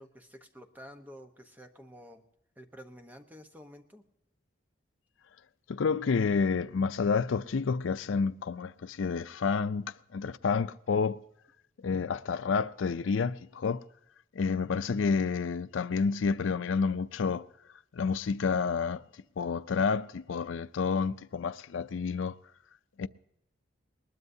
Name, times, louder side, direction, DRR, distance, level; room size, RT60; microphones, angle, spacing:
voice 1, 0.0-2.2 2.6-4.1, equal, 10° right, 1.0 m, -50 dB
voice 2, 5.7-11.2 11.8-13.8 14.3-17.5 17.9-19.0 19.4-22.4 23.0-23.1, left 5 dB, 80° left, 0.4 m, -29 dB
20.5 x 20.0 x 2.7 m
head